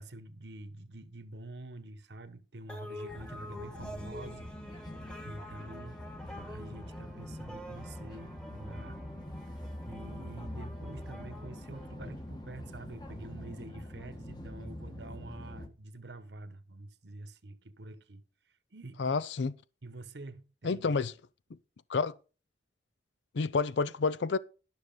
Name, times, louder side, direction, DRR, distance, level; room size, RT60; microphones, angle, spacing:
voice 1, 0.0-4.5 4.8-6.0 6.4-9.0 9.4-9.5 9.9-18.2 18.7-19.1 19.8-20.9, right 2 dB, 70° right, 1.0 m, -47 dB
sound 1, 2.7-12.5, left 1 dB, 5° left, 1.4 m, -48 dB
sound 2, 3.1-15.7, left 1 dB, 25° left, 1.3 m, -44 dB
voice 2, 19.0-19.5 20.6-21.1 21.9-22.1 23.3-24.4, left 4 dB, 80° left, 0.5 m, -29 dB
12.0 x 6.3 x 5.2 m
head